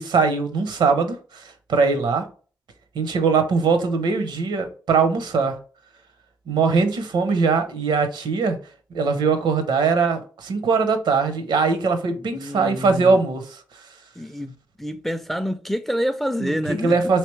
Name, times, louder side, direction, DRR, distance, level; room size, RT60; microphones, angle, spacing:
voice 1, 0.0-2.2 2.9-5.6 6.5-8.6 8.9-13.6 16.4-16.5 16.8-17.2, right 4 dB, 75° right, 0.7 m, -21 dB
voice 2, 12.2-13.2 14.2-14.5 14.8-17.0, equal, 5° left, 0.4 m, -27 dB
3.3 x 2.9 x 3.1 m
supercardioid pair, 55°, 8 cm